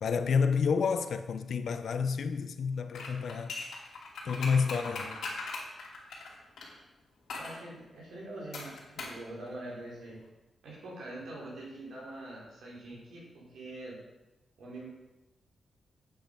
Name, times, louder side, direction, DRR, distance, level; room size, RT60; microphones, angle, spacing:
voice 1, 0.0-3.5 4.2-5.1, left 5 dB, 55° left, 0.6 m, -29 dB
sound 1, 2.9-6.7 7.3-7.6 8.5-9.2 9.5-9.6, left 3 dB, 75° left, 2.8 m, -39 dB
voice 2, 4.6-5.2 7.3-10.2 10.6-14.0 14.6-14.9, right 1 dB, 90° right, 4.1 m, -44 dB
8.9 x 7.8 x 5.2 m
wide cardioid pair, 180°, 0 cm